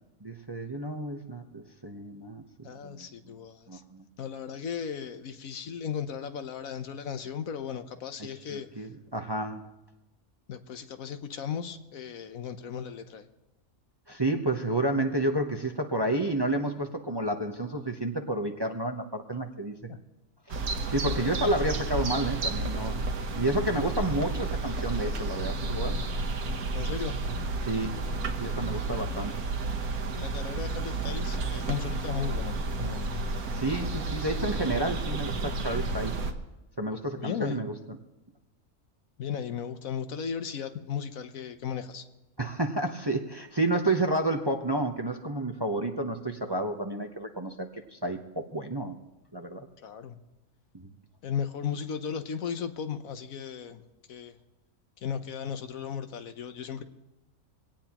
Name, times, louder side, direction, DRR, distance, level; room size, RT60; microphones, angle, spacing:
voice 1, 0.2-3.3 3.7-4.0 8.2-9.6 14.1-19.8 20.9-23.1 23.3-26.0 27.6-28.0 28.4-29.4 33.5-36.2 36.8-38.0 42.4-49.0 49.3-49.7 50.7-50.9, right 1 dB, 20° right, 4 dB, 0.8 m, -30 dB
voice 2, 2.6-3.8 4.2-8.7 10.5-13.2 19.9-20.0 21.0-21.5 26.7-27.2 30.2-33.1 34.1-34.2 34.5-34.8 37.2-37.6 39.2-42.0 49.8-50.2 51.2-53.8 54.1-54.3 55.0-56.8, left 7 dB, 70° left, 9 dB, 1.3 m, -36 dB
sound 1, 20.5-36.3, right 3 dB, 90° right, 1.6 m, -31 dB
23.0 x 17.5 x 3.0 m, 1.0 s
omnidirectional pair, 1.5 m